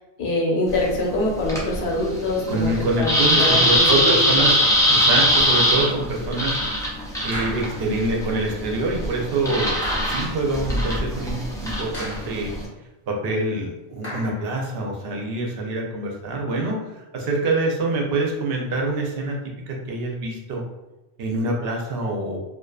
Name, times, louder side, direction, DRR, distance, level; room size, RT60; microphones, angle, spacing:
voice 1, 0.2-2.7 3.0-3.1 3.4-4.2, left 2 dB, 85° left, -1 dB, 0.9 m, -24 dB
sound 1, 0.7-12.6, equal, 5° left, 0.3 m, -22 dB
voice 2, 2.5-4.6 4.9-6.6 7.2-12.5 13.1-19.4 19.7-20.6 21.2-22.4, right 2 dB, 80° right, 0 dB, 0.8 m, -25 dB
sound 2, 3.4-4.0 5.5-5.7 7.3-8.0 9.8-10.5 11.9-12.5 14.0-14.6, equal, 30° left, 0.9 m, -35 dB
2.4 x 2.3 x 2.3 m, 1.0 s
omnidirectional pair, 1.0 m